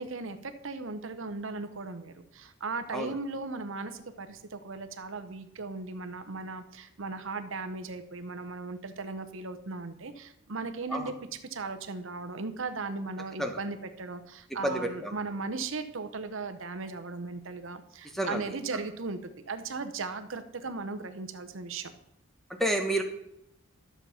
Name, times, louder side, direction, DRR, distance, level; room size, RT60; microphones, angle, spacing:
voice 1, 0.0-11.1 11.5-21.9, right 3 dB, 60° right, 9 dB, 0.8 m, -37 dB
voice 2, 14.6-15.1 18.1-18.4 22.6-23.0, right 1 dB, ahead, 4 dB, 1.1 m, -29 dB
12.0 x 7.1 x 5.6 m, 0.81 s
head